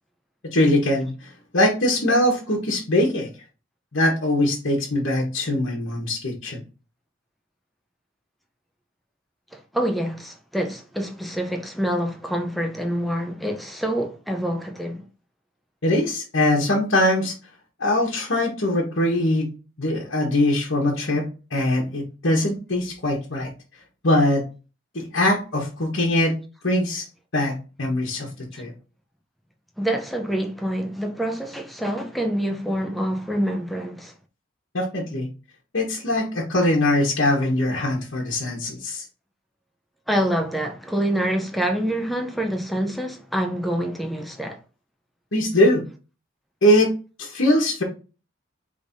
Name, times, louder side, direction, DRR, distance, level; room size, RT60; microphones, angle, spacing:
voice 1, 0.5-1.1 1.5-3.3 3.9-6.6 15.8-17.3 17.8-19.5 19.8-21.2 21.5-23.5 24.0-24.4 24.9-26.3 26.6-27.0 27.3-28.3 28.6-28.7 34.7-35.3 35.7-39.0 45.3-45.8 46.6-46.9 47.2-47.8, left 1 dB, 65° left, 1.3 m, -21 dB
voice 2, 9.5-15.0 29.8-34.1 40.1-44.6, right 1 dB, ahead, 0.6 m, -26 dB
5.4 x 3.4 x 2.7 m
head